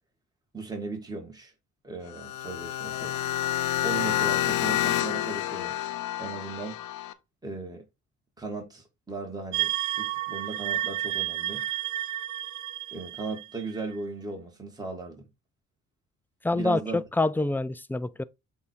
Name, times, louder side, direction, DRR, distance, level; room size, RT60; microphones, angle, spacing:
voice 1, 0.5-1.5 1.8-3.2 3.8-5.8 6.2-6.8 7.4-7.8 8.4-11.7 12.9-15.3 16.5-17.0, right 3 dB, 15° right, 2.0 m, -37 dB
sound 1, 2.1-7.1, left 12 dB, 85° left, 0.7 m, -29 dB
sound 2, 9.5-13.9, right 14 dB, 70° right, 0.7 m, -31 dB
voice 2, 16.4-18.2, left 2 dB, 5° left, 0.4 m, -26 dB
7.8 x 2.8 x 4.7 m
cardioid pair, 90°, 30 cm